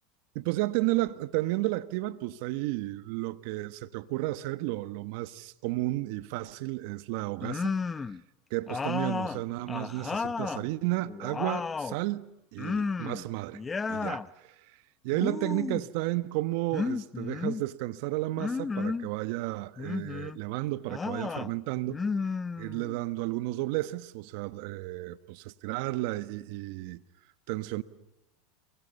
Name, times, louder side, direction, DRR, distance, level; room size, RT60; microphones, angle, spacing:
voice 1, 0.3-7.8 8.5-13.6 13.9-14.5 15.0-22.0 22.6-27.0 27.5-27.8, right 18 dB, 65° right, 1.3 m, -32 dB
sound 1, 7.4-8.2 8.7-10.7 11.0-12.0 12.6-13.3 13.5-14.3 15.1-15.9 16.7-17.6 18.4-19.1 19.8-20.4 20.9-21.5 21.9-23.0, left 4 dB, 20° left, 0.8 m, -33 dB
29.0 x 24.0 x 5.5 m
supercardioid pair, 115°, 0 cm